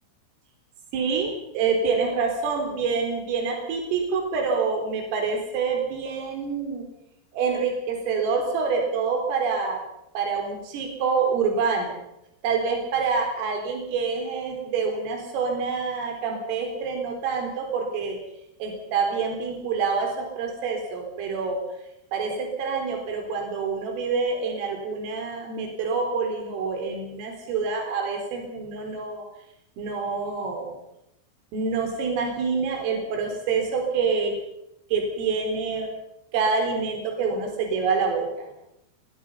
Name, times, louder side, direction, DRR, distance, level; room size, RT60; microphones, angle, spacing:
voice 1, 0.9-6.9 7.3-9.8 10.1-12.0 12.4-18.2 18.6-21.6 22.1-29.3 29.8-30.7 31.5-34.3 34.9-35.9 36.3-38.5, right 5 dB, 75° right, 3 dB, 6.6 m, -26 dB
23.5 x 21.0 x 5.6 m, 0.84 s
omnidirectional pair, 6.0 m